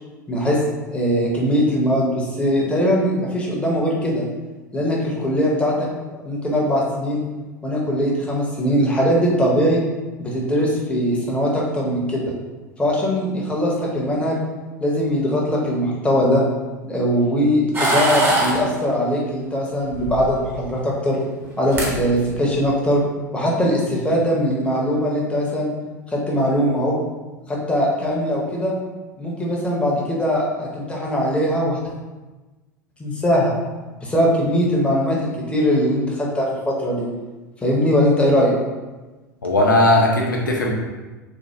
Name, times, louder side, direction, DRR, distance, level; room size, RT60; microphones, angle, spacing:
voice 1, 0.3-0.6 0.9-4.2 4.7-5.9 6.2-7.2 7.6-9.8 10.2-12.2 12.8-14.4 14.8-16.4 16.9-21.2 21.6-23.0 23.3-25.7 26.1-27.0 27.5-28.7 29.2-31.8 33.0-33.5 34.0-35.2 35.5-37.1 37.6-38.5, equal, 10° left, -3 dB, 0.7 m, -20 dB
sound 1, 17.7-18.6 19.9-20.6 21.4-21.5 21.7-21.9 22.3-22.7, right 1 dB, 20° right, 0.8 m, -21 dB
voice 2, 39.4-40.7, left 1 dB, 80° left, -1 dB, 0.6 m, -17 dB
3.3 x 2.1 x 2.8 m, 1.2 s
figure-of-eight pair, 80°, 10 cm